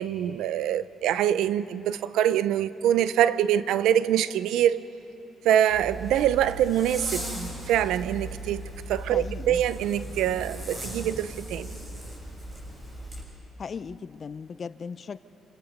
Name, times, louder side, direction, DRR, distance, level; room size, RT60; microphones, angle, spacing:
voice 1, 0.0-4.8 5.4-7.2 7.7-11.8, right 10 dB, 90° right, 0.6 m, -24 dB
Zipper (clothing), 5.7-13.2, right 1 dB, 30° right, 6.8 m, -37 dB
voice 2, 9.1-9.6 13.6-15.2, left 6 dB, 45° left, 0.6 m, -37 dB
27.0 x 26.0 x 5.3 m
cardioid pair, 90°, 0 cm